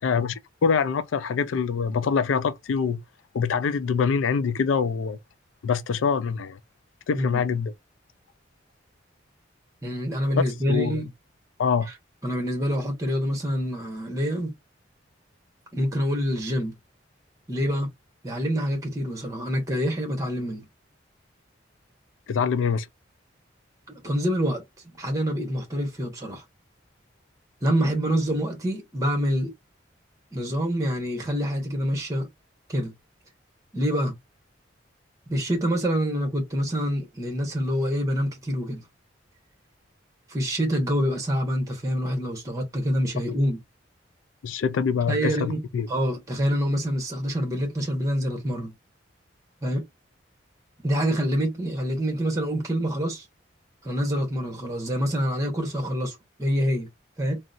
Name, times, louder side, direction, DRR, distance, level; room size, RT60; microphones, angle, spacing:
voice 1, 0.0-3.0 3.3-5.2 5.6-6.6 7.1-7.7 10.7-11.0 11.6-11.9 22.3-22.9 44.4-45.9, left 6 dB, 85° left, 0.4 m, -25 dB
voice 2, 9.8-11.1 12.2-14.5 15.7-16.7 17.5-17.9 18.2-20.6 23.9-24.6 25.0-26.4 27.6-29.5 30.3-32.3 32.7-32.9 33.7-34.1 35.3-38.8 40.3-43.6 45.1-45.6 45.9-48.7 49.6-49.8 50.8-53.2 53.8-56.9 57.2-57.4, equal, 15° right, 1.0 m, -26 dB
3.7 x 2.1 x 2.5 m
head